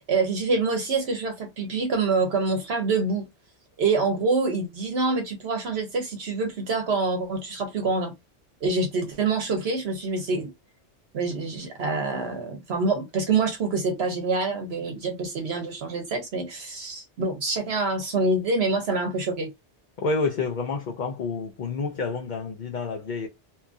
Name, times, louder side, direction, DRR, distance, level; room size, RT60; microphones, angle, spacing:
voice 1, 0.0-3.3 3.8-8.1 8.6-10.5 11.1-19.5, right 3 dB, 70° right, 0.9 m, -26 dB
voice 2, 20.0-23.3, left 4 dB, 50° left, 0.6 m, -29 dB
2.9 x 2.4 x 2.4 m
omnidirectional pair, 1.2 m